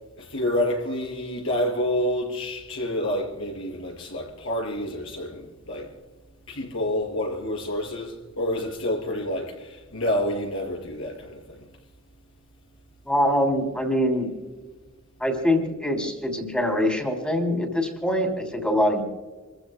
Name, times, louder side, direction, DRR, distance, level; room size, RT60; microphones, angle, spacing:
voice 1, 0.2-5.9 6.5-11.7, left 1 dB, 70° left, 5.9 m, -28 dB
voice 2, 13.1-14.3 15.2-19.0, equal, 5° left, 3.0 m, -24 dB
28.0 x 15.0 x 2.2 m
head